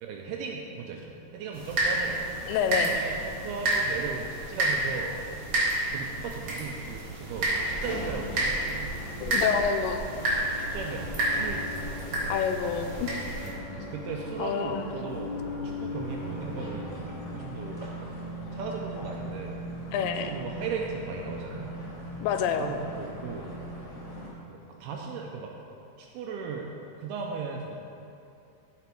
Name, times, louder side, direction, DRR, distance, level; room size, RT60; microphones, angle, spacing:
voice 1, 0.0-2.4 2.9-5.2 5.9-9.0 10.5-12.3 13.4-19.6 20.0-21.8 22.6-23.6 24.5-25.5 26.0-26.7 27.0-27.8, right 5 dB, 80° right, 0 dB, 2.3 m, -37 dB
sound 1, 1.5-13.5, right 1 dB, 45° right, 1.9 m, -30 dB
voice 2, 2.5-3.0 9.2-10.1 12.3-13.1 14.4-14.9 19.9-20.3 22.2-22.7, left 7 dB, 90° left, 7 dB, 2.8 m, -28 dB
sound 2, 7.1-17.4, left 2 dB, 70° left, 1.7 m, -39 dB
sound 3, 16.0-24.3, right 1 dB, 35° left, 1.7 m, -40 dB
14.5 x 5.0 x 4.5 m, 2.7 s
omnidirectional pair, 4.9 m